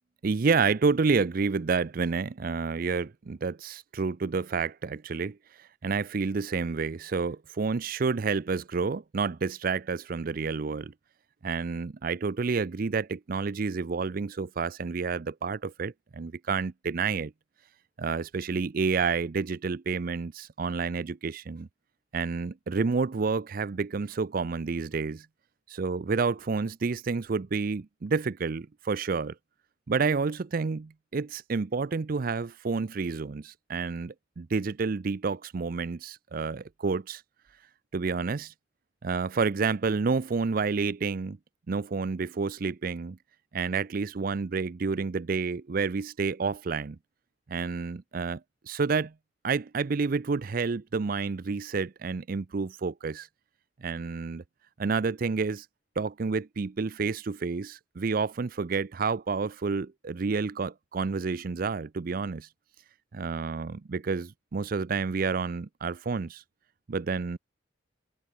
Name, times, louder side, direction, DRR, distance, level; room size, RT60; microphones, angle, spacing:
voice 1, 0.2-10.9 11.4-17.3 18.0-21.7 22.1-25.3 25.7-29.3 29.9-37.2 37.9-38.5 39.0-41.4 41.7-43.2 43.5-47.0 47.5-49.1 49.4-53.3 53.8-54.4 54.8-55.7 56.0-62.5 63.1-66.4 66.9-67.4, right 4 dB, 45° right, 0.5 m, -29 dB
open air
head